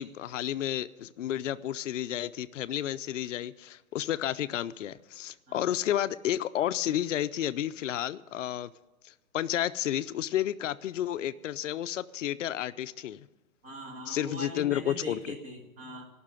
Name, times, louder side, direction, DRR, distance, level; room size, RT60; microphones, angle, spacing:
voice 1, 0.0-8.7 9.0-13.3 14.1-15.3, left 11 dB, 65° left, 14 dB, 0.7 m, -31 dB
voice 2, 13.6-16.1, equal, 20° right, 1 dB, 2.2 m, -41 dB
17.0 x 6.1 x 8.9 m, 1.1 s
hypercardioid pair, 155°, 41 cm